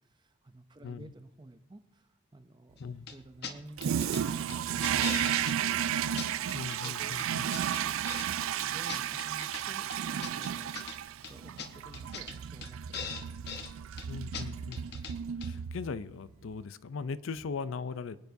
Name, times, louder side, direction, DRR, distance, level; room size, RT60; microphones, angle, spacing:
voice 1, 0.0-2.8 3.1-4.0 4.5-5.8 6.7-7.3 7.6-8.1 8.6-13.3, right 1 dB, 20° right, 0.5 m, -52 dB
voice 2, 0.8-1.1 2.8-3.1 6.5-7.4 10.8-10.9 14.1-14.8 15.4-18.2, left 5 dB, 75° left, 0.5 m, -39 dB
sound 1, 3.1-3.2 3.4-3.5 3.8-4.2 4.5-5.6 5.8-5.9 6.2-6.9 7.2-8.3 8.6-9.6 9.9-11.0 11.2-11.3 11.6-11.7 11.9-12.4 12.6-12.7 12.9-13.7 14.0-14.1 14.3-14.4 14.7-15.1 15.4-15.5, left 6 dB, 50° left, 1.0 m, -40 dB
Toilet flush, 3.8-16.1, right 9 dB, 85° right, 0.4 m, -33 dB
24.0 x 9.2 x 2.7 m
head